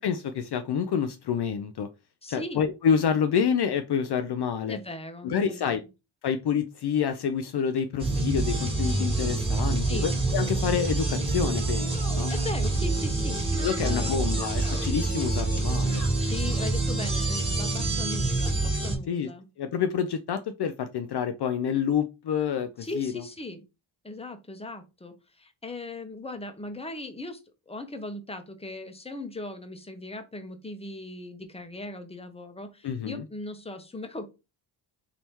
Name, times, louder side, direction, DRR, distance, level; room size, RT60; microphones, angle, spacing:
voice 1, 0.0-1.9 2.3-4.8 5.2-5.8 6.2-12.3 13.6-16.1 19.1-19.3 19.6-23.2 32.8-33.2, left 7 dB, 55° left, 0.5 m, -28 dB
voice 2, 2.2-2.6 4.7-5.9 9.8-10.1 12.3-13.5 13.8-14.1 16.2-19.4 22.8-23.6 24.0-27.4 27.7-34.3, left 2 dB, 10° left, 0.9 m, -38 dB
sound 1, 8.0-19.0, right 2 dB, 10° right, 1.9 m, -27 dB
3.5 x 2.9 x 4.4 m
cardioid pair, 70°, 48 cm